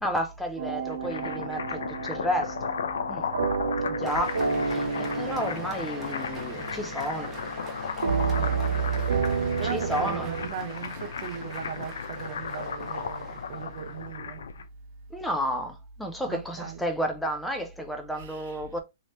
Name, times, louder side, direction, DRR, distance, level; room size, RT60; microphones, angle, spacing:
voice 1, 0.0-2.7 3.1-3.2 3.9-4.4 4.7-7.3 9.6-10.3 15.1-18.8, equal, 5° left, 0.6 m, -31 dB
sound 1, 0.6-10.5, right 5 dB, 85° right, 1.1 m, -30 dB
sound 2, 0.8-14.7, left 6 dB, 80° left, 0.5 m, -35 dB
Applause, 4.0-14.1, right 2 dB, 10° right, 1.1 m, -45 dB
voice 2, 8.3-14.4 16.3-16.8 18.2-18.6, right 7 dB, 60° right, 0.6 m, -38 dB
3.1 x 2.8 x 3.1 m
hypercardioid pair, 140°, 0 cm